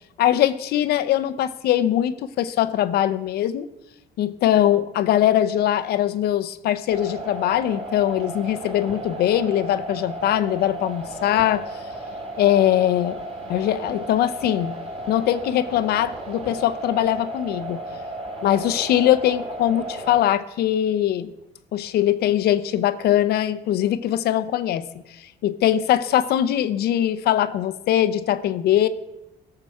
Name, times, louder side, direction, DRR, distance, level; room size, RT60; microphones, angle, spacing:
voice 1, 0.2-3.7 4.2-11.6 12.4-13.2 13.5-14.7 15.1-17.8 18.4-21.3 21.7-24.8 25.4-28.9, left 12 dB, 70° left, 13 dB, 0.7 m, -21 dB
sound 1, 6.9-20.2, right 1 dB, 35° right, 3.8 m, -34 dB
17.0 x 6.8 x 4.8 m, 0.94 s
cardioid pair, 110°, 17 cm